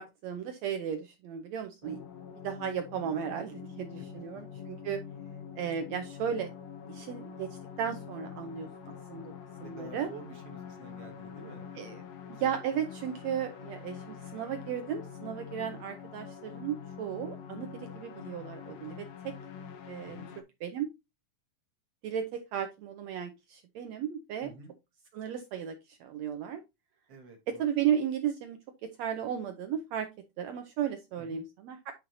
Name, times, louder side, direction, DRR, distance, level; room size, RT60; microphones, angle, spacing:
voice 1, 0.0-2.0 2.4-5.0 5.6-6.5 6.9-9.2 9.6-10.1 11.8-12.0 12.3-19.0 19.2-19.3 19.9-20.2 20.6-20.9 22.0-24.5 25.1-26.6 27.5-30.1 30.4-31.9, right 9 dB, 80° right, 7 dB, 1.6 m, -35 dB
sound 1, 1.8-20.4, left 7 dB, 70° left, 1.7 m, -45 dB
voice 2, 9.6-11.6 20.0-20.3 24.4-24.7 27.1-27.7 31.2-31.4, right 3 dB, 55° right, 4 dB, 2.0 m, -49 dB
9.1 x 5.4 x 2.7 m, 0.23 s
omnidirectional pair, 4.0 m